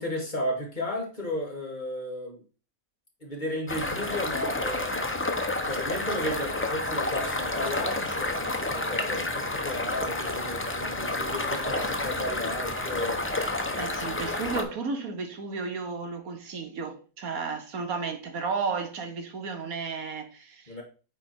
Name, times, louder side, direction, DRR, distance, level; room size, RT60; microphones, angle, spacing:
voice 1, 0.0-2.4 3.2-5.2 5.6-13.2 20.7-20.8, left 1 dB, 30° left, 2.1 m, -34 dB
sound 1, 3.7-14.6, left 2 dB, 15° left, 0.4 m, -30 dB
voice 2, 13.8-20.8, right 4 dB, 80° right, 1.5 m, -33 dB
9.0 x 3.4 x 4.3 m
omnidirectional pair, 1.5 m